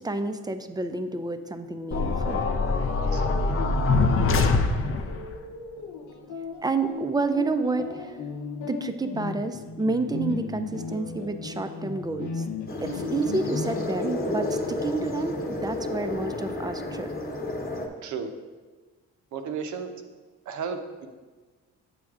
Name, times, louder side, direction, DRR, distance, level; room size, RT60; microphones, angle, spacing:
voice 1, 0.0-2.5 6.6-8.2 8.7-12.4 12.8-17.1, right 3 dB, 15° right, 9 dB, 0.4 m, -29 dB
sound 1, 1.9-5.3, left 3 dB, 45° left, 0.5 m, -23 dB
sound 2, 2.8-16.1, left 4 dB, 75° left, 0.8 m, -36 dB
voice 2, 3.0-3.6 18.0-18.3 19.3-19.9 20.5-21.1, right 6 dB, 70° right, 6 dB, 0.7 m, -34 dB
sound 3, 12.7-17.9, left 2 dB, 30° left, 1.0 m, -32 dB
8.1 x 6.3 x 2.4 m, 1.3 s
cardioid pair, 90°, 30 cm